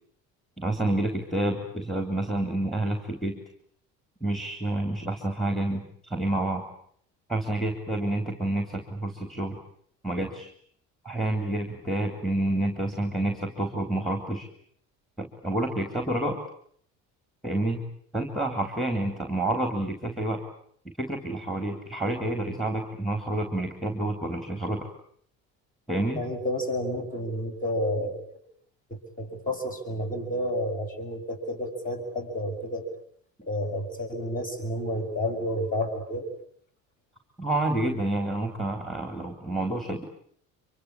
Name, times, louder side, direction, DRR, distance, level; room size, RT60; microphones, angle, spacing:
voice 1, 0.6-3.4 4.2-6.7 7.3-9.6 10.0-10.5 11.0-14.5 15.2-16.4 17.4-17.9 18.1-20.4 21.0-24.9 25.9-26.2 37.4-40.1, right 1 dB, ahead, 6 dB, 3.8 m, -29 dB
voice 2, 26.1-28.4 28.9-32.9 33.4-36.3, left 1 dB, 25° left, 5 dB, 7.4 m, -30 dB
25.5 x 23.5 x 8.7 m, 0.64 s
supercardioid pair, 90°, 36 cm